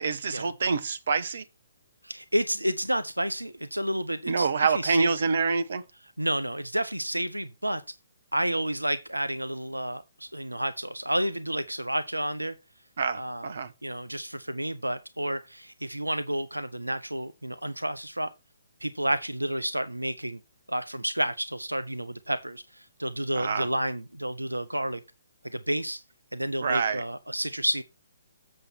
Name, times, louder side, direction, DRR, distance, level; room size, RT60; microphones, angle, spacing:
voice 1, 0.0-1.4 4.3-5.8 13.0-13.7 23.3-23.7 26.6-27.0, right 5 dB, 55° right, 1.1 m, -26 dB
voice 2, 2.0-4.5 4.7-5.3 6.2-7.8 8.3-12.5 13.1-13.5 13.8-18.3 18.8-20.4 20.7-25.0 25.4-26.0 26.3-27.8, right 1 dB, 85° right, 0.7 m, -30 dB
7.7 x 6.9 x 4.5 m
figure-of-eight pair, 130°, 0 cm